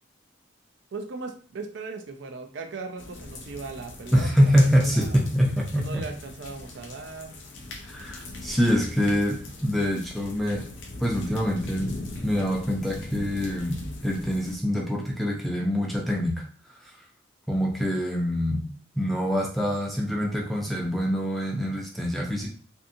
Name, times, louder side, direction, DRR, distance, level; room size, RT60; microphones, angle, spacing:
voice 1, 0.9-4.3 4.5-5.2 5.8-7.4, right 3 dB, 75° right, 5 dB, 0.4 m, -38 dB
sound 1, 3.0-14.6, left 2 dB, 75° left, 0.5 m, -40 dB
voice 2, 4.1-6.0 7.9-10.7 11.0-11.9 12.2-13.8 14.0-16.4 17.5-18.7 18.9-22.5, equal, ahead, -2 dB, 0.5 m, -25 dB
2.6 x 2.6 x 2.5 m, 0.43 s
head